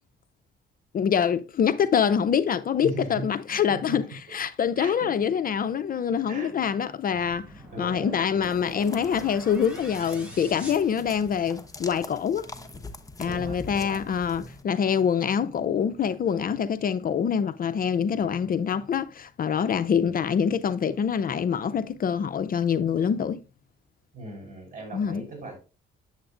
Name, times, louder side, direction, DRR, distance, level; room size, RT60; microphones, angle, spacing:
voice 1, 0.9-7.5 7.8-12.5 13.2-23.4 24.9-25.2, left 7 dB, 45° left, 0.5 m, -25 dB
voice 2, 2.8-4.0 4.3-4.4 4.8-5.1 6.3-6.5 7.7-8.1 13.2-14.0 14.4-14.5 18.2-18.4 19.9-20.1 24.1-25.7, right 2 dB, 40° right, 4.6 m, -39 dB
sound 1, 7.1-11.7, equal, 5° right, 3.8 m, -44 dB
sound 2, 8.4-14.6, left 3 dB, 15° left, 1.0 m, -43 dB
8.1 x 7.8 x 2.5 m
cardioid pair, 90°, 20 cm